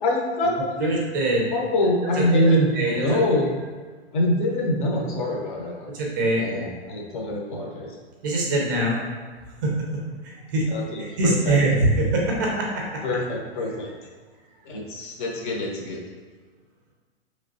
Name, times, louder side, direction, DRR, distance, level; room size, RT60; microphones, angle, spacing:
voice 1, 0.0-0.9 1.5-3.5 4.1-5.9 6.3-7.9 10.7-11.6 13.0-13.9 14.7-16.0, left 1 dB, 50° left, -1 dB, 0.8 m, -24 dB
voice 2, 0.8-1.5 2.1-2.4 2.7-3.0 5.9-6.5 8.2-9.0 9.6-9.8 10.2-10.7 11.0-13.0, right 2 dB, 20° right, -2 dB, 0.4 m, -23 dB
4.6 x 3.1 x 2.6 m, 1.4 s
hypercardioid pair, 165°, 33 cm